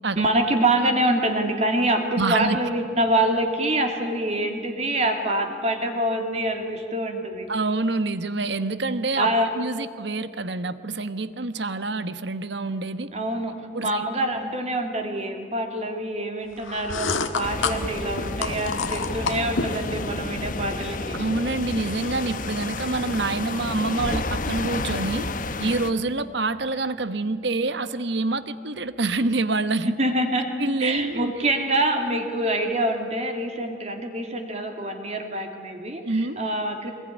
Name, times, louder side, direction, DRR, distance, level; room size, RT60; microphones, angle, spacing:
voice 1, 0.2-7.5 9.2-9.5 13.1-21.2 30.0-30.5 30.8-36.0 36.4-36.9, right 1 dB, 35° right, 4 dB, 2.6 m, -25 dB
voice 2, 2.2-2.6 7.5-13.1 13.7-14.1 21.1-25.3 25.6-30.0 30.6-31.3 36.0-36.4, right 3 dB, 60° right, 12 dB, 1.1 m, -26 dB
sound 1, 16.6-19.9, left 4 dB, 85° left, 1.6 m, -29 dB
sound 2, 17.4-25.9, left 2 dB, 40° left, 1.0 m, -30 dB
23.5 x 21.0 x 10.0 m, 2.4 s
head